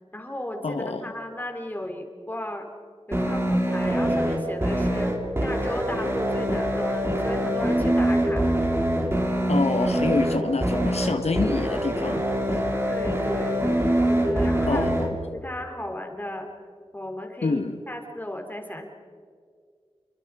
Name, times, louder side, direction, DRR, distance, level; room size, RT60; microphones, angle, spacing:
voice 1, 0.1-2.7 3.1-5.1 5.4-8.5 12.9-13.7 14.1-14.9 15.3-16.5 16.9-17.6 17.9-18.9, left 1 dB, 15° left, 3 dB, 3.7 m, -35 dB
voice 2, 0.6-1.1 9.5-12.2 14.7-14.9 17.4-17.8, left 3 dB, 85° left, 6 dB, 1.3 m, -26 dB
sound 1, 3.1-15.1, equal, 25° right, 3.5 m, -24 dB
28.5 x 24.0 x 4.9 m, 2.1 s
wide cardioid pair, 70°, 11 cm